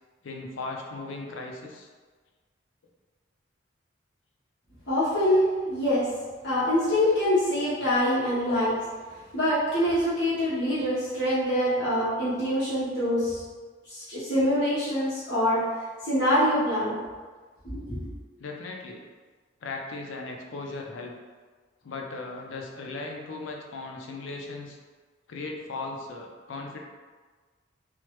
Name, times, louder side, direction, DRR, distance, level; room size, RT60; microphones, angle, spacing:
voice 1, 0.2-1.9 18.4-19.0 19.6-21.1 21.8-24.8 25.3-26.8, left 3 dB, 80° left, 1 dB, 0.5 m, -37 dB
voice 2, 4.9-6.1 6.4-8.8 9.3-13.4 13.9-15.6 16.0-17.0 17.7-18.0, equal, 60° left, -13 dB, 1.0 m, -25 dB
3.2 x 2.1 x 3.0 m, 1.4 s
head